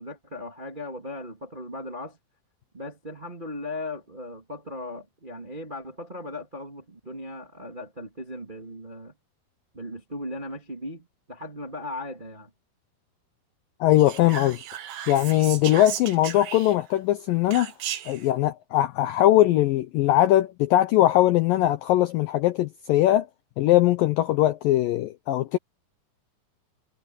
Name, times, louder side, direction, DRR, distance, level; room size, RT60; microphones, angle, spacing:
voice 1, 0.0-2.2 2.7-9.1 9.7-12.5, left 1 dB, 30° right, 0.9 m, -37 dB
voice 2, 13.8-14.6 15.1-17.7 18.1-23.3 23.6-25.6, left 14 dB, 85° left, 2.0 m, -21 dB
Whispering, 14.0-17.0 17.5-18.3, right 10 dB, 75° right, 3.8 m, -35 dB
omnidirectional pair, 5.0 m